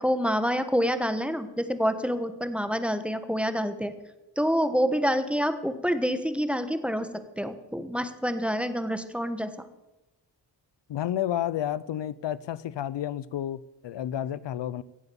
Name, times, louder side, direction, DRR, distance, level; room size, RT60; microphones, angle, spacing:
voice 1, 0.0-3.9 4.4-7.1 7.4-9.5, equal, 5° right, 1.3 m, -27 dB
voice 2, 10.9-14.8, left 11 dB, 70° left, 0.6 m, -31 dB
16.0 x 8.1 x 7.1 m
cardioid pair, 70°, 44 cm